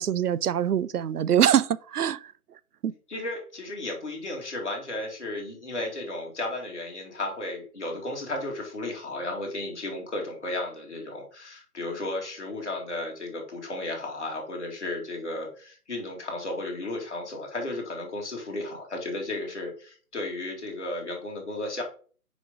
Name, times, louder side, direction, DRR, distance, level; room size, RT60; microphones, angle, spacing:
voice 1, 0.0-2.2 2.8-2.9, right 10 dB, 80° right, 0.6 m, -24 dB
voice 2, 3.1-21.8, left 2 dB, 50° left, 2.2 m, -34 dB
5.2 x 4.7 x 5.2 m
hypercardioid pair, 180°, 45 cm